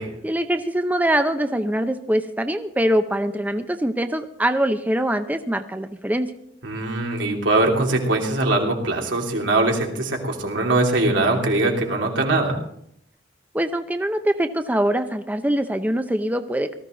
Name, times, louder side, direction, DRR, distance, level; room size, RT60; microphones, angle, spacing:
voice 1, 0.2-6.3 13.5-16.7, right 1 dB, 10° right, 8 dB, 0.7 m, -23 dB
voice 2, 6.6-12.6, right 2 dB, 85° right, 0 dB, 3.1 m, -21 dB
18.5 x 14.0 x 3.9 m, 0.70 s
head